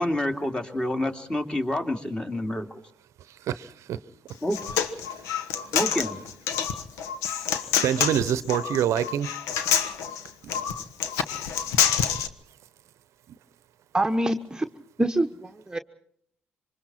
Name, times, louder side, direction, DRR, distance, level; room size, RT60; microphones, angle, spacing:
voice 1, 0.0-2.7 4.4-4.6 5.7-6.2, left 1 dB, 15° left, 4 dB, 2.9 m, -28 dB
voice 2, 3.5-4.0 7.8-9.3 10.4-10.5, right 10 dB, 65° right, 16 dB, 0.8 m, -25 dB
Human voice, 4.3-12.3, left 8 dB, 75° left, 1.3 m, -27 dB
voice 3, 13.9-14.6 15.0-15.8, right 1 dB, 15° right, 6 dB, 1.2 m, -25 dB
27.0 x 25.0 x 4.4 m, 0.68 s
hypercardioid pair, 50°, 5 cm